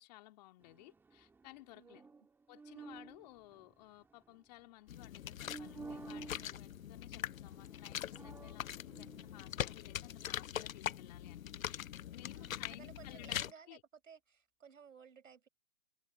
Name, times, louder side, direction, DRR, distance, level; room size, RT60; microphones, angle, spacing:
voice 1, 0.0-2.0 2.5-13.8, left 19 dB, 30° left, 3.4 m, -57 dB
sound 1, 0.6-4.7 5.4-7.0 7.3-9.7, right 4 dB, 5° right, 2.6 m, -53 dB
voice 2, 1.7-2.1 12.3-13.8 14.0-15.5, right 7 dB, 75° right, 5.2 m, -57 dB
Water Sludge, 4.9-13.5, left 11 dB, 85° left, 0.6 m, -42 dB
hypercardioid pair, 150°, 40 cm